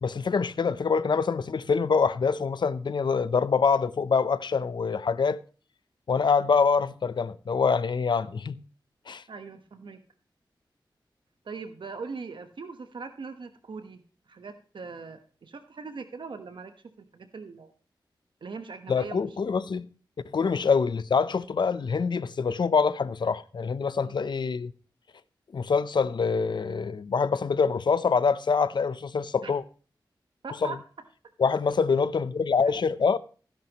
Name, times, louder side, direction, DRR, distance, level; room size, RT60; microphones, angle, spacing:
voice 1, 0.0-5.4 6.1-8.6 9.1-9.2 18.9-19.9 20.3-24.7 25.5-29.6 30.6-30.7 31.4-33.2, left 5 dB, 65° left, 0.7 m, -25 dB
voice 2, 9.3-10.0 11.4-14.0 14.3-17.7 18.4-19.2 20.4-20.6 24.0-24.2 29.4-29.5 30.4-30.8 32.6-32.7, right 4 dB, 75° right, 1.2 m, -41 dB
16.0 x 10.5 x 3.0 m
wide cardioid pair, 100°, 8 cm